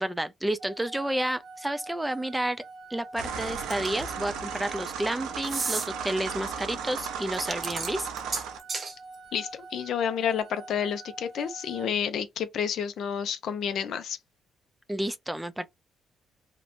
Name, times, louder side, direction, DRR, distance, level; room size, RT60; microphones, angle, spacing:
voice 1, 0.0-2.6 2.9-8.1 14.9-15.7, right 1 dB, 10° right, 0.3 m, -30 dB
sound 1, 0.6-11.9, right 2 dB, 65° right, 0.8 m, -45 dB
sound 2, 3.2-8.6, right 7 dB, 90° right, 0.5 m, -36 dB
sound 3, 3.7-4.1 5.4-5.9 7.3-8.9, right 4 dB, 35° right, 0.7 m, -32 dB
voice 2, 9.3-14.2, left 8 dB, 70° left, 0.5 m, -30 dB
2.8 x 2.1 x 2.5 m
cardioid pair, 90°, 0 cm